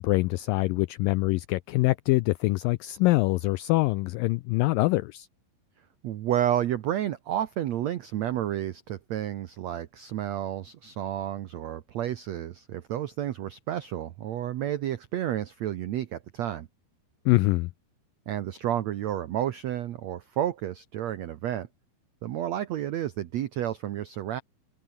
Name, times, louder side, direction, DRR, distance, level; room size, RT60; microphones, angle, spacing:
voice 1, 0.0-5.3 17.3-17.7, left 21 dB, 90° left, 2.0 m, -24 dB
voice 2, 6.0-16.7 18.3-21.7 22.2-24.4, right 11 dB, 80° right, 1.5 m, -31 dB
omnidirectional pair, 4.5 m